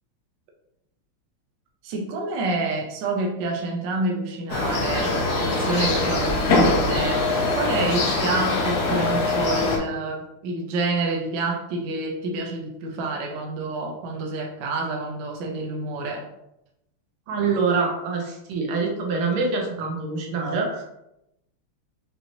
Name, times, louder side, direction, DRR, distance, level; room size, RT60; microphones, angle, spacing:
voice 1, 1.8-7.3 7.5-16.2, right 2 dB, 65° right, 1 dB, 1.3 m, -28 dB
sound 1, 4.5-9.8, left 2 dB, 60° left, 1.1 m, -22 dB
voice 2, 17.3-20.8, right 4 dB, 90° right, 0 dB, 1.8 m, -25 dB
5.7 x 3.1 x 2.6 m, 0.85 s
omnidirectional pair, 2.3 m